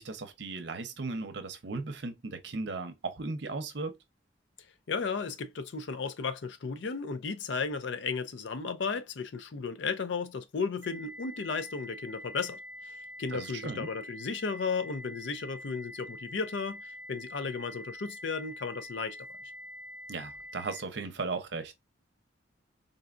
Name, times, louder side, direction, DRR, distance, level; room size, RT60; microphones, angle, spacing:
voice 1, 0.0-4.0 13.3-13.9 20.1-21.7, right 3 dB, 60° right, 0.7 m, -36 dB
voice 2, 4.9-19.2, left 5 dB, 65° left, 0.5 m, -34 dB
sound 1, 10.8-20.8, left 1 dB, 15° right, 0.5 m, -45 dB
3.9 x 2.2 x 2.5 m
head